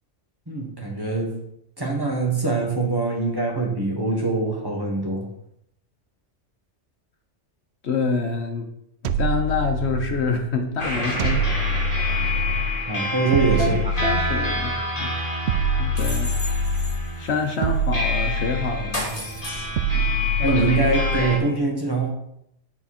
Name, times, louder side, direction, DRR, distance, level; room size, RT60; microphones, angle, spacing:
voice 1, 0.5-1.4 1.8-5.3 12.5-13.8 20.4-22.1, right 3 dB, 20° right, -1 dB, 1.5 m, -24 dB
voice 2, 7.8-8.7 9.0-11.4 12.0-12.2 13.6-15.1 15.8-16.3 17.2-19.1 19.9-20.1, left 4 dB, 65° left, 4 dB, 1.2 m, -26 dB
sound 1, 9.0-10.4 11.2-12.8 13.3-14.7 15.5-17.1 17.6-19.0 19.8-21.4, right 1 dB, 65° right, 0.8 m, -25 dB
sound 2, 10.8-21.4, left 1 dB, 30° left, 2.4 m, -28 dB
10.0 x 4.3 x 4.3 m, 0.76 s
omnidirectional pair, 1.2 m